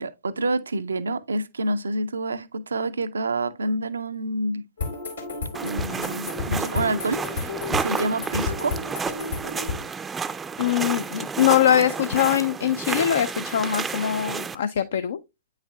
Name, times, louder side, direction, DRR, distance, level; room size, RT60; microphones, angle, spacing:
voice 1, 0.0-4.6 5.6-8.7, right 2 dB, 75° right, 0.4 m, -28 dB
sound 1, 4.8-9.8, left 4 dB, 80° left, 2.6 m, -31 dB
sound 2, 5.5-14.6, right 5 dB, 15° right, 0.4 m, -31 dB
voice 2, 10.6-15.2, left 10 dB, 60° left, 0.4 m, -22 dB
8.6 x 5.6 x 2.2 m
figure-of-eight pair, 110°, 0 cm